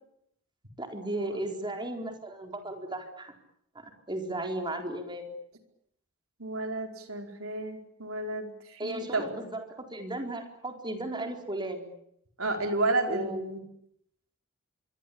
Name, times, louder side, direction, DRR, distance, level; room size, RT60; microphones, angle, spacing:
voice 1, 0.8-3.3 3.7-5.3 8.8-11.9 13.1-13.4, right 1 dB, 20° right, 4 dB, 4.3 m, -35 dB
voice 2, 6.4-9.3 12.4-13.6, right 2 dB, 70° right, 4 dB, 4.7 m, -31 dB
25.5 x 24.0 x 8.7 m, 0.74 s
head